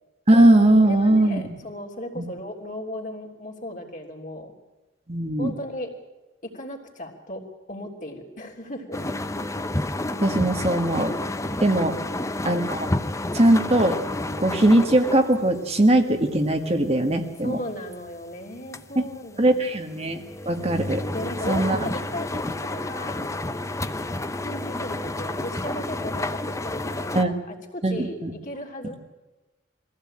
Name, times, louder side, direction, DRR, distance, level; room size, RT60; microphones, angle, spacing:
voice 1, 0.3-1.5 2.2-2.3 5.1-5.5 10.2-11.1 11.6-12.0 12.4-12.9 13.3-14.0 14.4-17.6 18.9-19.1 19.4-21.0 21.5-21.9 27.1-27.4 27.8-28.3, right 1 dB, 35° right, 5 dB, 1.5 m, -20 dB
voice 2, 0.9-4.5 5.4-5.9 6.4-7.4 7.7-9.0 12.0-12.2 17.4-19.6 21.1-23.3 24.4-29.0, left 1 dB, 45° left, 2 dB, 3.3 m, -36 dB
sound 1, 8.9-16.6 16.9-19.2 19.4-27.2, left 2 dB, 15° left, 0.8 m, -30 dB
22.5 x 15.5 x 8.8 m, 1.1 s
head